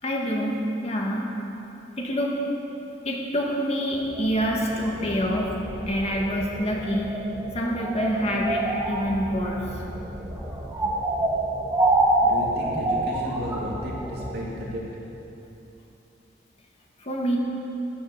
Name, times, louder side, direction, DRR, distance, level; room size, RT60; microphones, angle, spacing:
voice 1, 0.0-1.2 2.0-2.4 3.0-5.6 5.9-7.1 7.5-9.8 17.0-17.4, equal, 35° left, -1 dB, 1.8 m, -26 dB
sound 1, 3.9-14.4, right 2 dB, 15° right, 1.9 m, -28 dB
voice 2, 12.2-14.8, equal, 60° right, -4 dB, 2.7 m, -33 dB
13.5 x 9.2 x 6.6 m, 2.9 s
head